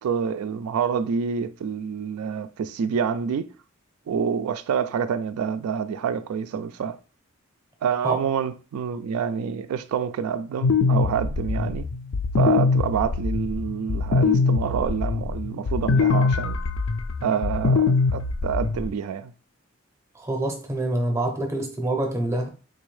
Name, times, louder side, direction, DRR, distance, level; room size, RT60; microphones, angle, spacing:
voice 1, 0.0-3.5 4.1-7.0 7.8-11.9 12.4-16.6 17.2-19.3, right 7 dB, 85° right, 0.3 m, -27 dB
sound 1, 10.6-18.9, left 4 dB, 65° left, 0.4 m, -23 dB
voice 2, 20.1-22.5, right 1 dB, 15° right, 0.5 m, -26 dB
3.8 x 2.6 x 3.2 m
head